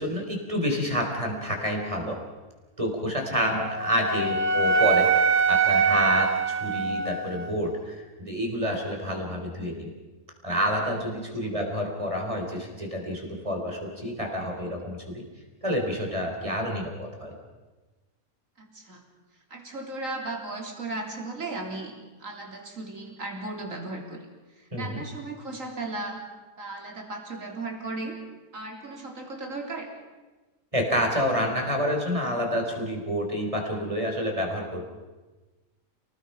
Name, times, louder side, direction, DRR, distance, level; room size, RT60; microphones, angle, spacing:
voice 1, 0.0-2.2 2.8-5.1 5.5-9.9 10.4-15.0 15.6-17.3 24.7-25.0 30.7-34.8, equal, 20° right, 1 dB, 4.1 m, -28 dB
Wind instrument woodwind instrument, 3.3-7.5, right 5 dB, 90° right, 1.8 m, -24 dB
voice 2, 18.6-19.0 19.5-24.2 24.6-26.2 26.6-28.2 28.5-29.9, right 2 dB, 60° right, 2 dB, 3.9 m, -36 dB
29.5 x 19.5 x 5.8 m, 1.2 s
omnidirectional pair, 1.6 m